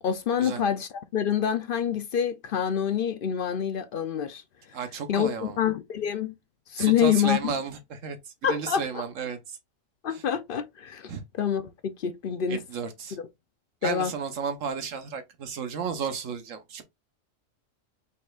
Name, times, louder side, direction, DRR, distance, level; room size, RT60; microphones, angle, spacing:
voice 1, 0.0-4.4 5.1-6.3 6.7-7.5 8.4-9.0 10.0-11.1 11.4-12.6 13.2-13.3 13.8-14.1, left 8 dB, 55° left, 0.6 m, -27 dB
voice 2, 4.7-5.6 6.8-8.2 8.5-9.6 10.1-10.2 11.1-11.2 12.5-13.2 13.8-16.8, right 6 dB, 75° right, 1.3 m, -33 dB
5.4 x 4.1 x 2.4 m
omnidirectional pair, 1.3 m